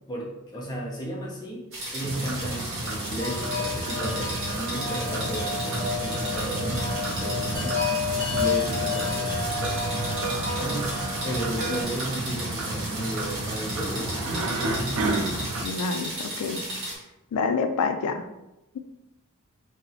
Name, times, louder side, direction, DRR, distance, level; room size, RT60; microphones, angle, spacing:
voice 1, 0.1-1.7 1.9-7.8 8.3-9.8 10.2-11.0 11.2-15.1, right 1 dB, 20° left, -4 dB, 0.5 m, -34 dB
sound 1, 1.7-17.0, right 1 dB, 55° right, 0.8 m, -35 dB
sound 2, 2.0-15.6, right 2 dB, 75° right, 0.4 m, -32 dB
Wind chime, 3.2-11.8, left 4 dB, ahead, 1.2 m, -31 dB
voice 2, 15.6-16.6 17.3-18.3, left 4 dB, 85° left, 7 dB, 0.3 m, -27 dB
2.8 x 2.0 x 2.7 m, 0.93 s
head